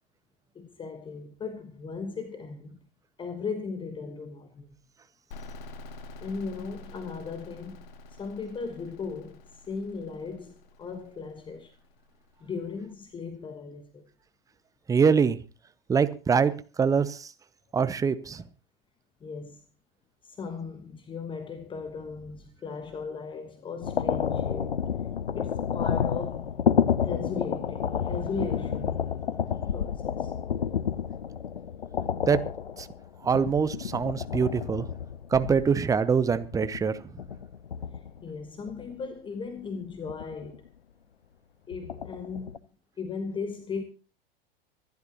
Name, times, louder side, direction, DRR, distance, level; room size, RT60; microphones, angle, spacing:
voice 1, 0.5-2.8 3.2-4.7 6.2-11.7 12.4-14.1 19.2-19.6 20.2-24.9 25.3-26.5 27.0-29.2 29.7-30.3 37.9-40.6 41.7-42.7 43.0-43.8, left 5 dB, 15° left, 1.2 m, -37 dB
sound 1, 5.3-12.8, left 2 dB, 50° left, 1.7 m, -48 dB
voice 2, 14.9-15.4 15.9-17.3 17.7-18.4 32.2-32.4 32.8-32.9 33.2-34.9 35.3-37.0, right 6 dB, 10° right, 0.7 m, -24 dB
sound 2, 23.8-38.2 38.7-38.9 40.1-40.7 41.7-42.6, left 8 dB, 75° left, 0.7 m, -30 dB
25.0 x 12.0 x 2.9 m
figure-of-eight pair, 95°, 30 cm